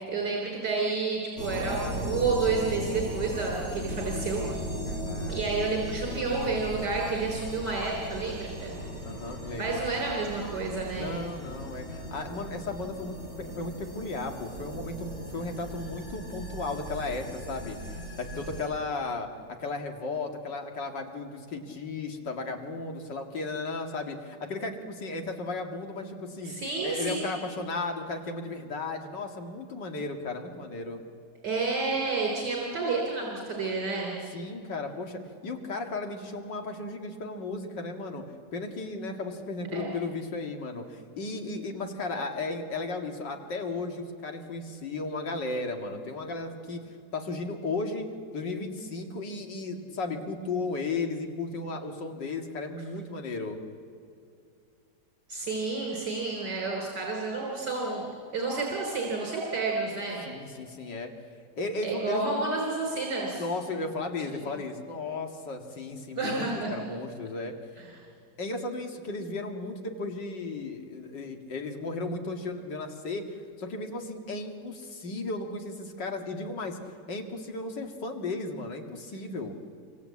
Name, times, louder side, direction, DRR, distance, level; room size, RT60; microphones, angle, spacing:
voice 1, 0.1-4.6 5.3-8.8 9.6-11.1 26.5-27.2 31.4-34.1 39.7-40.0 55.3-60.2 61.8-63.4 66.2-66.7 67.8-68.0, right 3 dB, 70° right, -1 dB, 4.1 m, -30 dB
sound 1, 1.4-18.7, equal, 40° left, 7.9 m, -37 dB
voice 2, 4.8-5.7 9.0-9.8 10.9-17.8 18.1-19.3 19.6-26.5 26.8-31.0 34.3-38.2 38.5-46.8 47.1-53.6 60.3-61.1 61.6-62.4 63.4-67.6 68.4-73.2 73.6-76.8 77.1-79.5, left 3 dB, 85° left, 4 dB, 2.7 m, -35 dB
27.0 x 24.0 x 8.4 m, 2.5 s
omnidirectional pair, 1.9 m